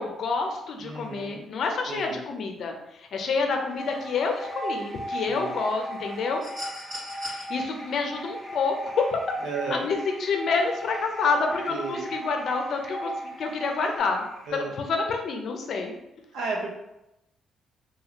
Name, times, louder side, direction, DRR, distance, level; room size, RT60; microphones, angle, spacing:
voice 1, 0.0-6.4 7.3-9.2 9.7-14.3 14.5-16.0, left 4 dB, 60° left, 3 dB, 0.5 m, -28 dB
voice 2, 0.8-1.4 1.9-2.2 5.3-5.5 9.4-9.8 11.7-12.1 14.5-14.7 16.3-16.7, right 3 dB, 80° right, 0 dB, 0.7 m, -33 dB
sound 1, 3.6-14.5, equal, 10° right, 0.8 m, -50 dB
sound 2, 3.8-14.0, right 1 dB, 20° left, 0.6 m, -37 dB
sound 3, 6.4-7.4 8.9-9.1, left 1 dB, 35° right, 1.2 m, -38 dB
2.7 x 2.4 x 2.9 m, 0.90 s
cardioid pair, 90°, 0 cm